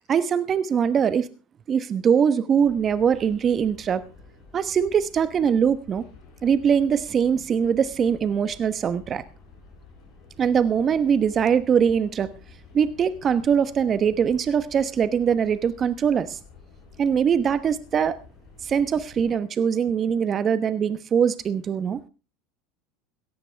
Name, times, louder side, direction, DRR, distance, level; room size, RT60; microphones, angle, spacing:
voice 1, 0.1-1.3 1.7-4.0 4.5-6.1 6.4-9.2 10.4-12.3 12.7-16.4 17.0-18.2 18.6-22.0, right 7 dB, 35° right, 1.1 m, -22 dB
sound 1, 2.6-19.3, left 4 dB, 55° left, 7.6 m, -50 dB
17.0 x 13.0 x 3.4 m
supercardioid pair, 110°, 0 cm